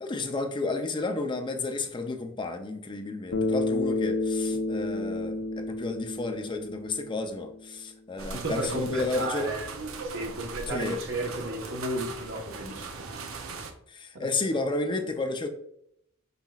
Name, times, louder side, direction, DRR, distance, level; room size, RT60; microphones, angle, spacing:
voice 1, 0.0-9.5 10.7-11.0 13.9-15.5, left 3 dB, 25° left, 5 dB, 0.5 m, -32 dB
Bass guitar, 3.3-7.7, left 2 dB, 80° left, 0.7 m, -30 dB
sound 1, 8.2-13.7, right 4 dB, 80° right, 0.7 m, -39 dB
voice 2, 8.3-9.7 10.1-12.9 14.1-14.3, right 1 dB, 65° right, 0 dB, 1.2 m, -33 dB
5.5 x 4.1 x 2.4 m, 0.73 s
head